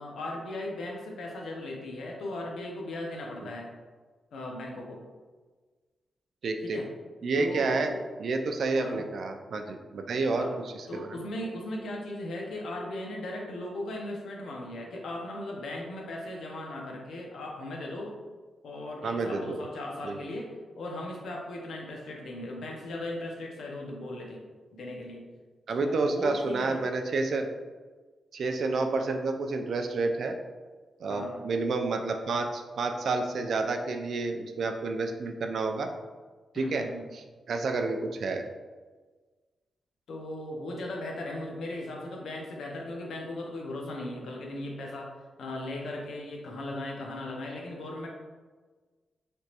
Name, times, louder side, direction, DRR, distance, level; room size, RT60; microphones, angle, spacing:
voice 1, 0.0-3.7 4.3-5.0 6.6-6.9 7.3-8.0 8.7-9.0 10.4-10.5 10.9-18.1 18.6-24.4 24.7-25.2 25.8-26.8 31.1-31.4 36.5-37.1 40.1-45.1 45.4-48.1, left 1 dB, 75° left, 0 dB, 0.7 m, -37 dB
voice 2, 6.4-6.8 7.2-7.9 8.2-11.2 19.0-19.6 20.0-20.2 25.7-27.5 28.3-30.4 31.0-35.9 36.5-36.9 37.5-38.4, right 3 dB, 65° right, 5 dB, 0.3 m, -29 dB
3.4 x 2.9 x 2.8 m, 1.4 s
wide cardioid pair, 120°, 0 cm